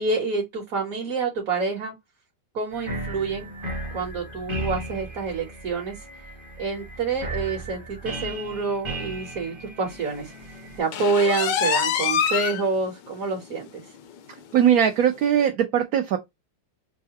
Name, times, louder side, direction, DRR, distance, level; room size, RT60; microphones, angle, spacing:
voice 1, 0.0-1.9 2.5-3.5 3.9-5.9 6.6-10.3 10.8-13.8, right 4 dB, 55° right, 1.3 m, -27 dB
sound 1, 2.7-10.8, right 2 dB, 25° right, 0.6 m, -35 dB
sound 2, 10.9-12.6 13.1-13.2 13.6-13.7 14.1-14.2 15.1-15.2, left 8 dB, 80° left, 1.2 m, -24 dB
voice 2, 14.5-16.2, right 9 dB, 70° right, 0.9 m, -20 dB
5.5 x 2.1 x 2.8 m
omnidirectional pair, 2.0 m